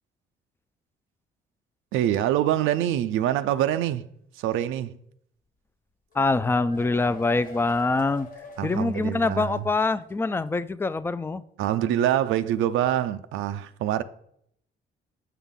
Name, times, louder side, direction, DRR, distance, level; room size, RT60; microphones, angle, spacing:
voice 1, 1.9-4.1 4.4-5.0 8.6-9.6 11.6-14.0, right 11 dB, 90° right, 0.4 m, -25 dB
sound 1, 6.1-9.7 10.0-10.1 10.5-10.6, left 2 dB, 45° left, 1.3 m, -46 dB
voice 2, 6.1-8.3 8.6-11.4, left 3 dB, 10° left, 0.3 m, -24 dB
6.1 x 5.6 x 3.7 m
cardioid pair, 90°, 20 cm